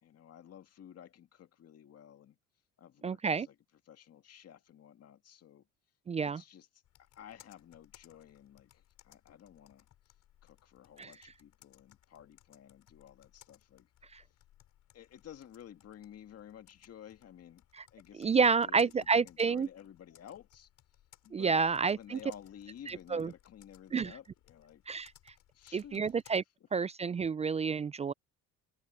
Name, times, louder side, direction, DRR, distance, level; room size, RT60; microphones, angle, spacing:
voice 1, 0.0-2.4 2.8-3.6 3.9-5.7 6.2-6.7 7.1-10.1 10.4-13.9 14.9-17.6 17.9-20.7 21.2-21.6 21.9-24.8 25.5-26.2, left 10 dB, 45° left, 2.1 m, -53 dB
voice 2, 3.0-3.5 6.1-6.4 11.0-11.1 14.1-14.2 18.2-19.7 21.3-22.2 22.9-23.3 23.9-24.1 24.9-25.1 25.7-26.4 26.7-28.1, right 5 dB, 20° right, 0.3 m, -29 dB
Computer keyboard, 6.8-26.4, left 13 dB, 60° left, 7.0 m, -64 dB
cardioid pair, 105°, 34 cm